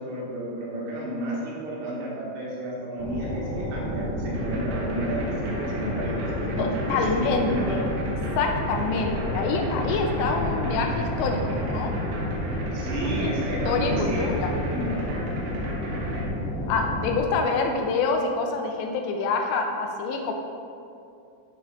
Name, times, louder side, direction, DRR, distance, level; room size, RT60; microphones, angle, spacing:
voice 1, 0.0-7.2 7.5-7.7 8.0-8.1 12.7-15.1, right 1 dB, 70° right, -5 dB, 3.4 m, -32 dB
sound 1, 3.0-17.2, left 1 dB, 65° left, 2.9 m, -30 dB
sound 2, 4.3-16.2, right 1 dB, 90° right, 3.6 m, -37 dB
voice 2, 6.6-7.9 8.4-11.9 13.2-13.4 13.7-14.5 16.7-20.3, left 4 dB, 85° left, 3 dB, 2.7 m, -26 dB
12.5 x 5.3 x 2.5 m, 2.5 s
omnidirectional pair, 5.3 m